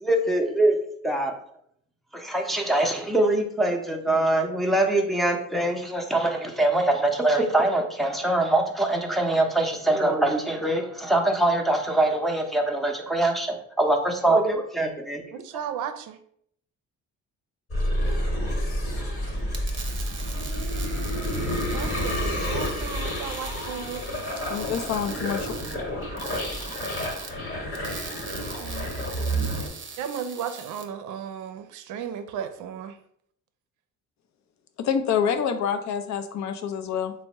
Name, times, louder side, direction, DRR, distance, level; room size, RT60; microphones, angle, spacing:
voice 1, 0.0-0.8 1.0-1.3 2.1-15.2, right 2 dB, ahead, 1 dB, 0.5 m, -23 dB
voice 2, 15.3-16.2 21.7-24.3 28.6-29.0 30.0-33.0, right 8 dB, 80° right, 9 dB, 0.5 m, -35 dB
sound 1, 17.7-29.7, equal, 45° left, 1.1 m, -29 dB
sound 2, 19.4-30.9, right 5 dB, 40° right, 0.6 m, -40 dB
voice 3, 24.5-25.5 34.8-37.1, left 7 dB, 65° left, 7 dB, 0.5 m, -27 dB
3.4 x 2.1 x 4.1 m, 0.68 s
cardioid pair, 90°, 30 cm